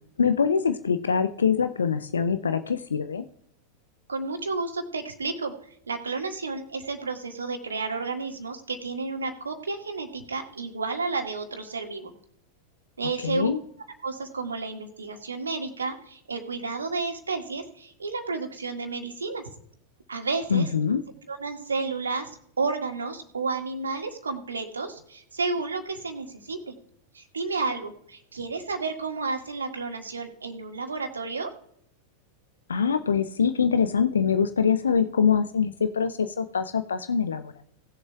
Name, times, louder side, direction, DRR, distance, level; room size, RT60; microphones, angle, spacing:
voice 1, 0.2-3.2 13.2-13.6 20.5-21.0 32.7-37.7, left 6 dB, 70° left, 10 dB, 0.5 m, -24 dB
voice 2, 4.1-5.5 5.9-12.1 13.0-13.5 14.0-19.4 20.1-20.7 21.3-22.3 22.6-26.7 27.1-31.5, right 4 dB, 75° right, 4 dB, 1.8 m, -31 dB
19.0 x 7.2 x 2.3 m, 0.70 s
figure-of-eight pair, 90°, 0 cm